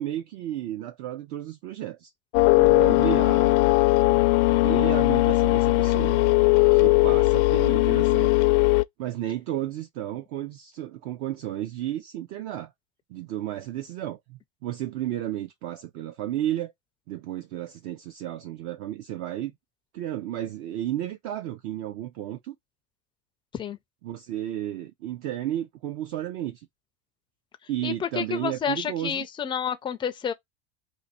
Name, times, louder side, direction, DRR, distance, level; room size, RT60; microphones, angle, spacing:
voice 1, 0.0-2.1 2.6-3.6 4.5-6.2 6.7-8.3 9.0-12.7 13.1-16.7 17.1-19.5 19.9-22.6 24.0-26.7 27.7-29.3, right 12 dB, 55° right, 0.6 m, -33 dB
sound 1, 2.3-8.8, left 21 dB, 80° left, 0.5 m, -19 dB
voice 2, 27.8-30.3, left 8 dB, 15° left, 0.3 m, -29 dB
2.7 x 2.6 x 4.1 m
supercardioid pair, 135°, 35 cm